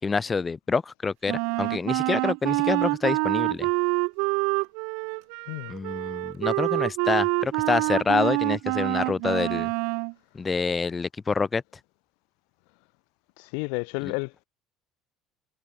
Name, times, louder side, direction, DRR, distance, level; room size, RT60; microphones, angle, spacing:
voice 1, 0.0-3.7 5.7-9.7 10.3-11.6 14.0-14.1, left 4 dB, 20° left, 7.3 m, -27 dB
Wind instrument woodwind instrument, 1.3-10.1, right 36 dB, 80° right, 3.7 m, -26 dB
voice 2, 13.4-14.4, left 40 dB or more, 85° left, 6.5 m, -31 dB
cardioid pair, 120°, 0 cm